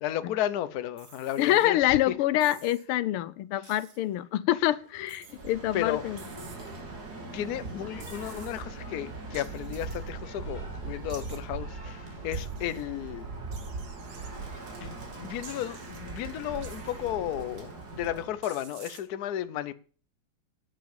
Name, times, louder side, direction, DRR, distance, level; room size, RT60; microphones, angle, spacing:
voice 1, 0.0-2.1 3.6-3.7 5.7-6.0 7.3-13.3 14.8-19.7, left 12 dB, 60° left, 1.0 m, -34 dB
sound 1, 1.0-1.7 2.4-2.9 3.6-4.0 5.1-5.5 6.2-6.8 8.0-8.6 9.3-10.1 11.1-11.4 12.3-12.8 13.5-14.3 15.4-16.0 16.6-17.1 18.4-19.0, right 6 dB, 85° right, 2.4 m, -51 dB
voice 2, 1.4-6.2 6.4-6.6, left 14 dB, 90° left, 1.6 m, -26 dB
sound 2, 4.6-17.4, equal, 20° right, 2.9 m, -53 dB
Bird, 5.3-18.4, right 3 dB, 45° right, 2.8 m, -40 dB
10.5 x 7.4 x 7.2 m
omnidirectional pair, 2.3 m